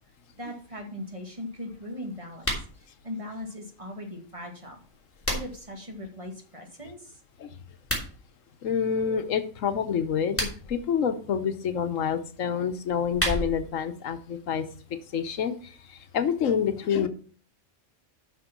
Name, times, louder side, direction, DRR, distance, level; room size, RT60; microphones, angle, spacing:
voice 1, 0.4-4.8 5.3-7.2, left 1 dB, 25° right, 2 dB, 2.1 m, -39 dB
sound 1, 2.3-2.7 4.7-5.7 7.7-8.1 10.1-10.8 12.8-13.7, equal, 10° left, 3.0 m, -31 dB
voice 2, 8.6-14.7 15.1-17.1, left 7 dB, 85° left, 10 dB, 1.3 m, -27 dB
8.2 x 6.1 x 6.0 m, 0.42 s
omnidirectional pair, 1.3 m